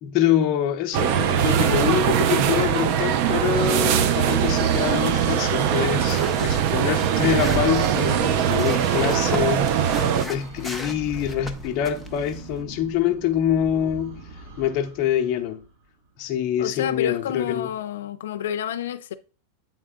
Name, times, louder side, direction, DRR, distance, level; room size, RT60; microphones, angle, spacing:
voice 1, 0.0-14.2 14.6-15.6 16.2-17.7, left 10 dB, 40° left, 0.8 m, -25 dB
sound 1, 0.9-10.3, right 9 dB, 50° right, 0.5 m, -21 dB
sound 2, 6.1-12.6, left 1 dB, ahead, 0.6 m, -36 dB
sound 3, 7.5-16.4, right 3 dB, 80° right, 2.6 m, -44 dB
voice 2, 16.6-19.1, left 10 dB, 90° left, 0.4 m, -29 dB
7.9 x 3.6 x 3.7 m
supercardioid pair, 155°, 0 cm